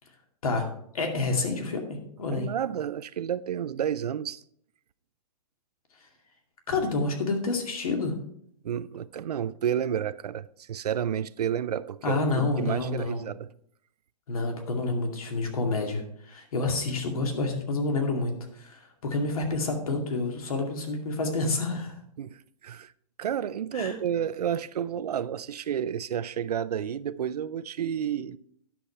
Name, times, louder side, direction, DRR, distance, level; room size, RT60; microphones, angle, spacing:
voice 1, 0.9-2.5 6.7-8.1 12.0-13.2 14.3-22.0 23.7-24.0, left 3 dB, 60° left, 2.3 m, -28 dB
voice 2, 2.3-4.4 8.6-13.5 22.2-22.9 23.2-28.4, right 9 dB, 75° right, 0.5 m, -31 dB
10.0 x 6.9 x 4.4 m
hypercardioid pair, 170°, 20 cm